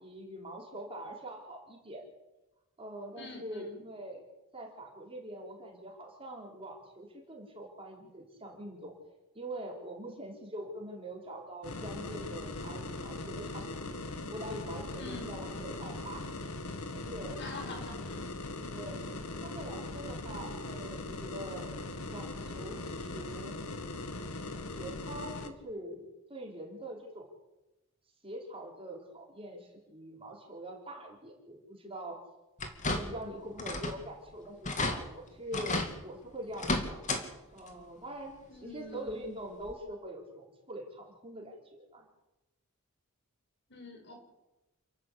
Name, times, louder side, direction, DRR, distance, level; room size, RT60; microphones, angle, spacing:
voice 1, 0.0-2.0 2.8-4.2 4.5-8.9 9.3-13.9 14.3-16.6 16.9-17.4 18.7-19.0 19.4-21.7 22.1-23.5 24.5-27.3 28.2-32.2 32.9-37.0 37.5-38.3 38.6-42.1, right 1 dB, 25° right, -1 dB, 4.4 m, -44 dB
voice 2, 3.2-3.8 15.0-15.4 17.4-18.3 38.5-39.3 43.7-44.2, left 2 dB, 55° left, 4 dB, 5.0 m, -45 dB
sound 1, 11.6-25.5, left 2 dB, 80° left, 1.9 m, -40 dB
sound 2, 32.6-33.3 33.6-34.0 34.3-34.4 34.6-35.0 35.5-35.9 36.5-37.2 37.6-37.7 39.1-39.2 39.7-39.8, left 2 dB, 35° left, 2.7 m, -32 dB
29.0 x 12.5 x 8.4 m, 1.0 s
head